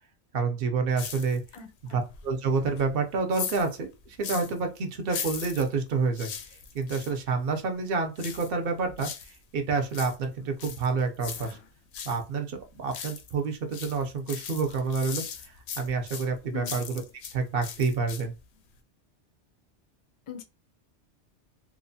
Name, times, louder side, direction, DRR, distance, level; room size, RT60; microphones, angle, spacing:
voice 1, 0.3-1.4 1.9-6.3 6.7-11.6 12.0-17.0 17.3-18.3, right 4 dB, 60° right, 5 dB, 0.7 m, -28 dB
sound 1, 1.0-1.7 2.1-4.6 5.0-7.2 8.2-9.4 9.7-12.2 12.6-13.4 13.7-17.4 17.6-18.4 18.8-18.9, left 7 dB, 70° left, 0.8 m, -39 dB
voice 2, 1.5-2.0 16.5-16.8 20.3-20.4, left 9 dB, 45° left, 6 dB, 0.4 m, -41 dB
2.9 x 2.1 x 2.6 m, 0.27 s
omnidirectional pair, 1.2 m